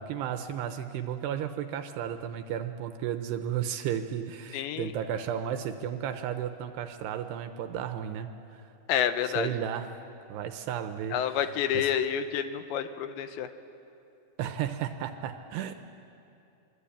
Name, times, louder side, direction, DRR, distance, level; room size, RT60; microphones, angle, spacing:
voice 1, 0.0-8.6 9.3-9.9 10.3-11.4 11.7-11.9 14.4-15.7, right 9 dB, 80° right, 8 dB, 2.6 m, -33 dB
voice 2, 4.5-4.9 8.9-9.5 11.1-13.5, left 9 dB, 80° left, 9 dB, 3.1 m, -29 dB
24.0 x 23.5 x 8.6 m, 2.7 s
omnidirectional pair, 5.3 m